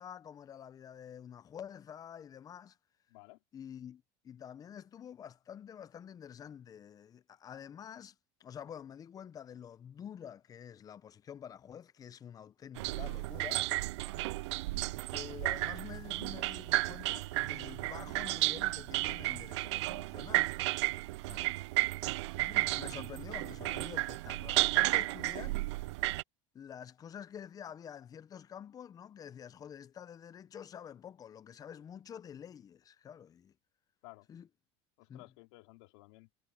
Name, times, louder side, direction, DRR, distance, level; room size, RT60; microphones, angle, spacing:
voice 1, 0.0-2.8 3.5-13.6 15.1-20.5 21.2-21.6 22.3-25.6 26.5-33.5 34.3-34.5 35.1-35.3, left 8 dB, 25° left, 0.7 m, -48 dB
voice 2, 3.1-3.4 14.0-14.3 21.8-21.9 34.0-34.3 35.0-36.3, left 24 dB, 75° left, 3.6 m, -56 dB
sound 1, 12.8-26.2, right 19 dB, 90° right, 0.5 m, -33 dB
supercardioid pair, 135°, 14 cm